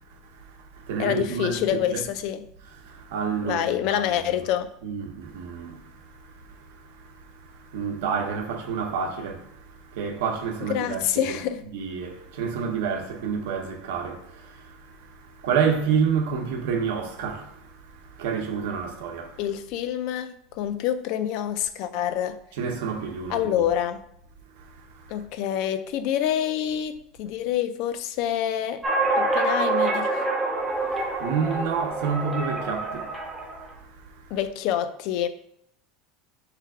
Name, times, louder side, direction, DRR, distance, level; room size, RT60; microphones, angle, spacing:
voice 1, 0.1-2.1 2.7-4.1 4.4-4.5 4.8-11.4 11.7-19.4 22.5-23.6 24.6-25.2 30.7-34.4, right 6 dB, 80° right, 0.8 m, -30 dB
voice 2, 1.0-2.4 3.4-4.7 10.6-11.6 19.4-22.4 23.3-24.0 25.1-28.8 29.2-30.3 34.3-35.3, left 10 dB, 50° left, 0.4 m, -27 dB
sound 1, 28.8-33.6, right 2 dB, 5° right, 0.6 m, -26 dB
3.3 x 3.3 x 4.7 m
supercardioid pair, 165°, 0 cm